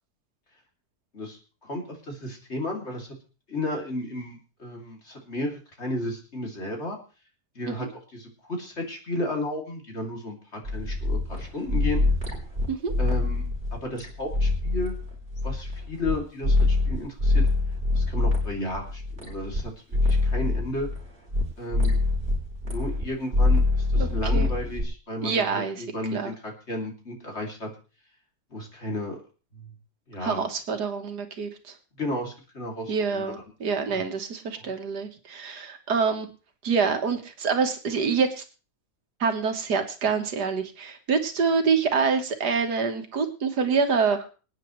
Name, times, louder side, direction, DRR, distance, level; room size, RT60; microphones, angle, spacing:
voice 1, 1.1-3.1 3.5-7.0 7.5-12.0 13.0-15.0 15.4-17.4 17.9-19.7 20.0-20.9 21.6-22.0 22.6-27.7 28.5-29.2 29.5-29.7 30.1-30.4 32.0-33.3 33.9-34.0 34.6-34.7, left 1 dB, 40° left, 1 dB, 3.1 m, -33 dB
sound 1, 10.6-16.1 16.4-19.6 19.9-21.4 21.7-23.1 23.3-24.8, left 2 dB, 40° right, 3.7 m, -24 dB
voice 2, 24.0-24.5 25.2-26.3 30.2-31.7 32.9-36.3 36.6-38.4 39.2-44.3, right 5 dB, 85° right, 6 dB, 2.0 m, -26 dB
25.5 x 9.2 x 3.2 m, 0.35 s
omnidirectional pair, 1.7 m